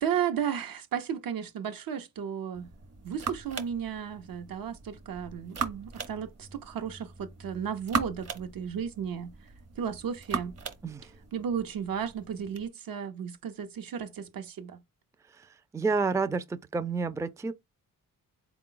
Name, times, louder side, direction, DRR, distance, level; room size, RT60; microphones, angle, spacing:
voice 1, 0.0-2.7 3.0-9.3 9.8-10.5 11.3-14.8, right 8 dB, 70° right, 0.8 m, -34 dB
sound 1, 2.5-12.7, right 5 dB, 45° right, 0.8 m, -39 dB
voice 2, 15.7-17.5, right 4 dB, 10° right, 0.4 m, -29 dB
4.0 x 2.3 x 3.8 m
cardioid pair, 85°, 35 cm